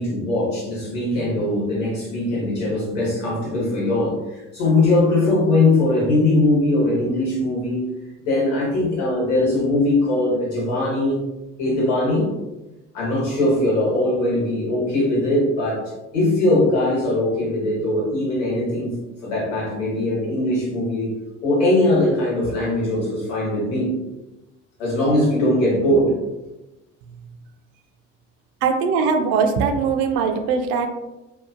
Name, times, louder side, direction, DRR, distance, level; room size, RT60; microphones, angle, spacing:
voice 1, 0.0-7.9 8.2-11.2 11.6-12.3 12.9-15.8 16.1-18.9 19.2-21.1 21.4-23.9 24.8-26.1, left 1 dB, 75° left, -5 dB, 1.2 m, -20 dB
voice 2, 28.6-30.9, right 5 dB, 60° right, 6 dB, 0.5 m, -20 dB
2.8 x 2.2 x 2.4 m, 1.0 s
hypercardioid pair, 60°, 37 cm